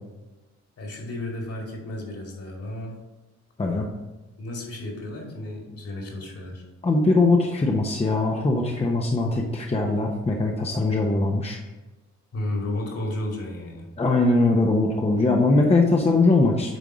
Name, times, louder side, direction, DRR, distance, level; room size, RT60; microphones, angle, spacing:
voice 1, 0.8-2.9 4.4-6.6 12.3-13.9, left 1 dB, 50° left, -1 dB, 2.5 m, -33 dB
voice 2, 6.8-11.6 14.0-16.8, left 2 dB, 20° left, 0 dB, 1.0 m, -21 dB
9.2 x 3.6 x 4.9 m, 1.1 s
cardioid pair, 90°, 30 cm